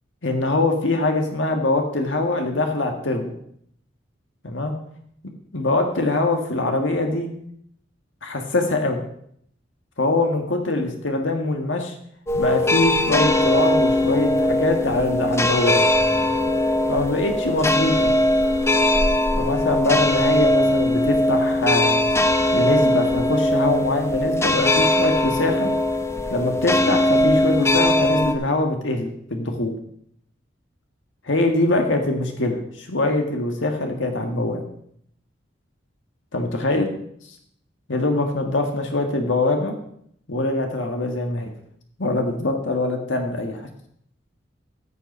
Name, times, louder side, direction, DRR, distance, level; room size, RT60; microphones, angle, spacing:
voice 1, 0.2-3.3 4.4-4.7 5.5-7.3 8.2-9.0 10.0-11.9 12.3-15.8 16.9-18.1 19.4-22.0 22.5-25.7 26.3-29.7 31.2-34.6 36.3-36.9 37.9-39.7 40.3-41.5 42.0-43.7, left 2 dB, 90° left, 4 dB, 1.7 m, -23 dB
sound 1, 12.3-28.3, left 1 dB, 15° left, 0.9 m, -20 dB
14.5 x 6.9 x 5.5 m, 0.68 s
head